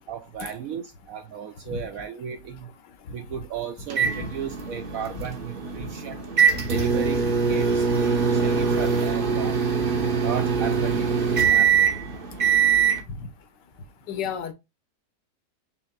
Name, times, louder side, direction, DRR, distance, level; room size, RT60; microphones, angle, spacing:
voice 1, 0.0-2.7 3.1-6.2 6.7-9.6 10.2-11.1 11.4-11.9, right 8 dB, 70° right, 0.8 m, -35 dB
sound 1, 3.9-13.0, right 6 dB, 45° right, 0.7 m, -23 dB
voice 2, 14.1-14.5, left 7 dB, 80° left, 1.4 m, -31 dB
5.7 x 3.5 x 2.3 m
omnidirectional pair, 1.9 m